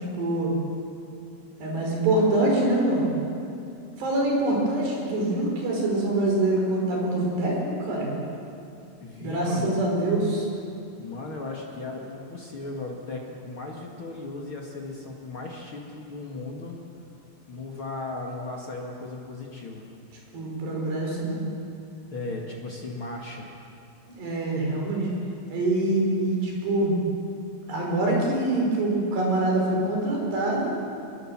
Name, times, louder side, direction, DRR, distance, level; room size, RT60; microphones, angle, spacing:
voice 1, 0.1-0.5 1.6-3.1 4.0-8.1 9.2-10.5 20.3-21.4 24.2-25.1 25.5-27.0 27.7-30.7, right 2 dB, 55° right, -1 dB, 6.9 m, -25 dB
voice 2, 9.0-9.8 11.0-16.8 17.5-19.9 22.1-23.5, left 2 dB, 70° left, -1 dB, 1.2 m, -36 dB
24.5 x 22.0 x 7.5 m, 2.7 s
omnidirectional pair, 5.9 m